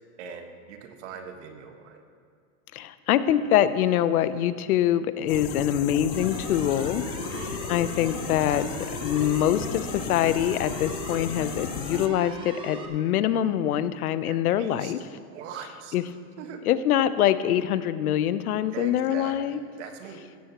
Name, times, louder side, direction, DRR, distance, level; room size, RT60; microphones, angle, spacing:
voice 1, 0.2-2.0 7.2-7.5 14.3-14.9 15.3-15.9 16.4-16.6 18.7-20.2, right 7 dB, 55° right, 5 dB, 1.6 m, -41 dB
voice 2, 2.7-7.0 7.4-8.7 8.9-15.1 15.9-16.0 16.7-19.6, left 11 dB, 80° left, 13 dB, 0.8 m, -24 dB
sound 1, 5.3-12.1, left 10 dB, 40° left, 0.6 m, -35 dB
sound 2, 6.1-12.9, right 3 dB, 10° right, 0.7 m, -38 dB
16.0 x 13.5 x 3.0 m, 2.2 s
supercardioid pair, 160°, 43 cm